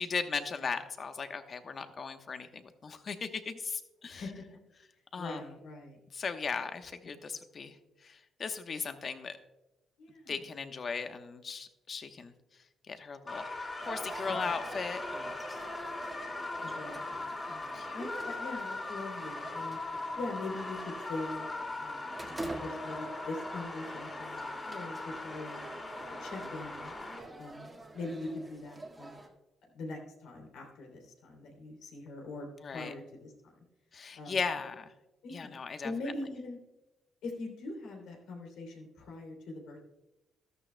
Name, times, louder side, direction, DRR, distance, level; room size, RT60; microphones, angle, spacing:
voice 1, 0.0-4.2 5.1-5.5 6.1-9.4 10.3-13.5 13.8-15.4 17.5-18.0 32.6-32.9 33.9-34.9 35.3-35.9, left 5 dB, 45° left, 8 dB, 1.0 m, -38 dB
voice 2, 4.0-4.4 5.1-6.0 10.0-10.4 14.3-14.5 16.6-17.2 17.9-19.8 20.2-21.4 21.8-22.1 22.4-25.6 26.2-26.9 27.4-29.2 29.7-33.3 34.2-34.4 35.2-36.6 37.2-39.8, left 2 dB, 85° left, 1 dB, 2.9 m, -42 dB
sound 1, 13.3-27.2, left 2 dB, 30° left, 3.4 m, -40 dB
sound 2, 13.8-29.3, right 2 dB, 20° right, 1.7 m, -46 dB
13.5 x 12.5 x 2.2 m, 0.99 s
cardioid pair, 90°, 0 cm